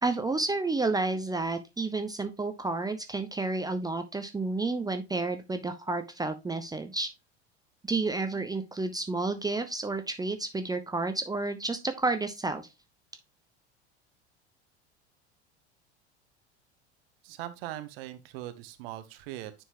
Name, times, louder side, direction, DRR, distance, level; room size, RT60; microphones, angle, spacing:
voice 1, 0.0-7.1 7.9-12.7, right 3 dB, 10° right, 0.8 m, -30 dB
voice 2, 17.2-19.6, right 14 dB, 60° right, 1.1 m, -40 dB
10.0 x 4.6 x 2.7 m
figure-of-eight pair, 80°, 34 cm